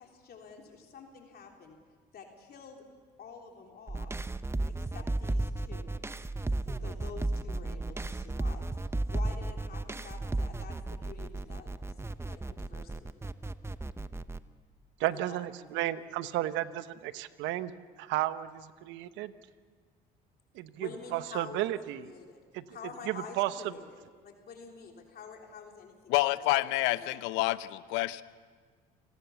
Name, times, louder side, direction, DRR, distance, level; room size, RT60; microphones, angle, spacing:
voice 1, 0.0-1.8 2.1-2.9 3.2-4.2 4.7-5.9 6.7-11.8 12.3-13.2 15.1-15.8 20.8-22.4 22.7-26.1 26.4-26.5 26.9-27.2, left 5 dB, 55° left, 2 dB, 3.6 m, -48 dB
sound 1, 3.9-14.4, right 2 dB, 15° right, 0.9 m, -34 dB
voice 2, 15.0-17.7 18.0-19.3 20.5-22.0 22.5-22.6 23.1-23.7, right 14 dB, 75° right, 13 dB, 1.0 m, -33 dB
voice 3, 26.1-28.2, left 18 dB, 80° left, 16 dB, 0.8 m, -28 dB
28.5 x 19.0 x 7.1 m, 1.6 s
supercardioid pair, 70°, 19 cm